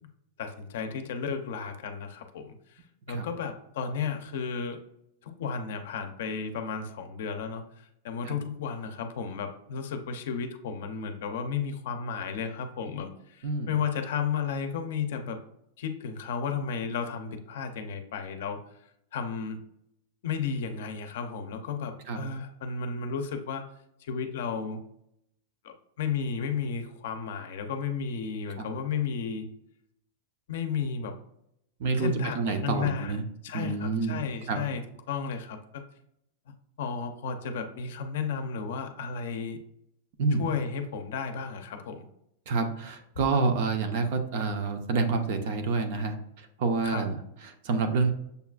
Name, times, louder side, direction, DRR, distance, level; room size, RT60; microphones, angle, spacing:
voice 1, 0.4-2.6 3.1-4.8 5.2-7.6 8.0-15.4 15.8-18.6 19.1-19.6 20.2-23.7 24.0-24.8 25.6-29.5 30.5-31.1 32.0-33.2 33.4-34.8 35.1-35.8 36.8-39.6 40.4-42.1 46.8-47.0, left 6 dB, 60° left, 7 dB, 0.5 m, -33 dB
voice 2, 31.8-33.2 33.5-34.2 34.5-34.6 40.2-40.4 42.5-48.1, right 4 dB, 40° right, 7 dB, 0.5 m, -28 dB
6.7 x 2.4 x 2.3 m, 0.78 s
supercardioid pair, 180°, 0 cm